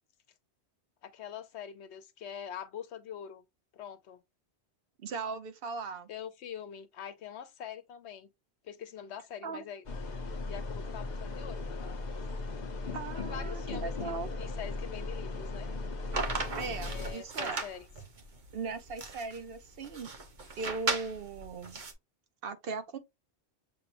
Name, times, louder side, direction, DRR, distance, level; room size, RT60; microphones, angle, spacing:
voice 1, 1.0-3.4 3.7-4.2 6.1-8.3 8.6-9.8 10.4-11.7 13.1-14.1 14.4-15.7 16.9-17.9, left 8 dB, 80° left, 1.0 m, -44 dB
voice 2, 5.0-6.1 9.4-9.7 12.9-14.3 16.6-17.6 18.5-20.1 20.6-21.8 22.4-23.0, right 4 dB, 65° right, 0.8 m, -38 dB
sound 1, 9.8-17.1, left 3 dB, 45° left, 0.8 m, -37 dB
sound 2, 16.1-21.9, right 4 dB, 45° right, 1.1 m, -37 dB
6.7 x 3.0 x 2.5 m
omnidirectional pair, 1.1 m